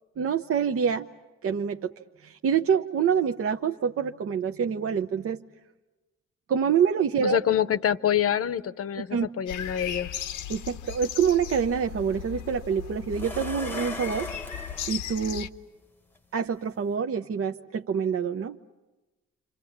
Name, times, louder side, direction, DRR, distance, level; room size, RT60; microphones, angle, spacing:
voice 1, 0.2-1.1 1.4-1.9 2.2-5.4 6.5-7.4 9.1-9.3 10.5-14.3 14.9-15.5 16.3-18.6, right 7 dB, 50° right, 6 dB, 0.8 m, -26 dB
voice 2, 7.2-10.2, left 9 dB, 50° left, 14 dB, 0.8 m, -26 dB
sound 1, 9.5-15.5, left 10 dB, 85° left, 1.0 m, -37 dB
sound 2, 13.1-14.9 16.2-16.3 16.8-16.9, left 2 dB, 5° left, 1.0 m, -38 dB
27.5 x 27.0 x 7.3 m, 1.1 s
cardioid pair, 90°, 30 cm